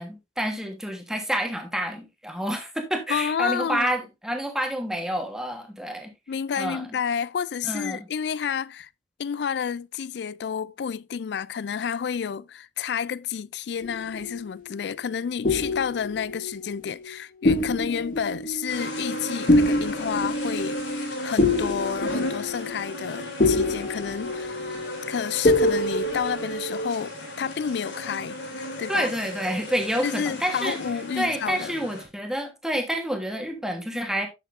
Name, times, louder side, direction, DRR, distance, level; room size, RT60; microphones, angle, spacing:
voice 1, 0.0-6.1 6.6-6.8 7.7-8.0 28.9-30.8 31.2-34.3, equal, 5° right, 1.3 m, -28 dB
voice 2, 3.1-3.9 6.3-8.9 9.2-24.6 25.1-28.4 28.8-29.1 30.0-31.7, left 7 dB, 70° left, 0.3 m, -30 dB
sound 1, 13.8-14.9 15.4-17.1 17.4-27.0, left 1 dB, 45° left, 0.9 m, -26 dB
sound 2, 18.7-32.0, left 1 dB, 90° left, 2.9 m, -35 dB
9.9 x 6.8 x 2.6 m
head